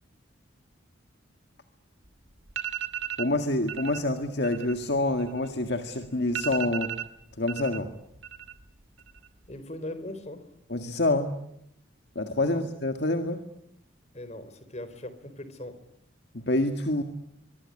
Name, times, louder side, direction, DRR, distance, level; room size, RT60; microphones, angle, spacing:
sound 1, 2.0-2.1 2.5-3.3 3.7-4.0 4.3-5.8 6.0-6.1 6.3-7.8 8.1-8.7 9.0-9.5, right 9 dB, 80° right, 2.7 m, -35 dB
voice 1, 3.2-6.9 7.4-7.9 10.7-11.3 12.2-13.4 16.3-17.0, left 2 dB, 55° left, 6 dB, 1.9 m, -27 dB
voice 2, 9.5-10.4 12.4-12.6 14.1-15.8, left 1 dB, 35° left, 12 dB, 3.7 m, -39 dB
24.5 x 23.0 x 9.8 m, 0.77 s
head